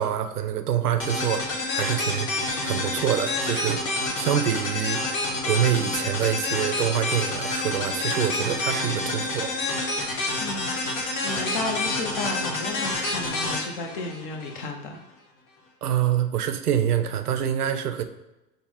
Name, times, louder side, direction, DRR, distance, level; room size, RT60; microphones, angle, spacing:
voice 1, 0.0-2.3 2.6-3.9 4.2-5.0 5.5-9.5 15.8-18.0, right 9 dB, 70° right, 8 dB, 0.5 m, -26 dB
sound 1, 1.0-14.7, left 2 dB, 55° left, 1.1 m, -28 dB
voice 2, 10.4-10.7 11.2-15.0, left 2 dB, 35° left, 3 dB, 0.5 m, -33 dB
5.7 x 2.0 x 3.5 m, 0.98 s
figure-of-eight pair, 90°, 48 cm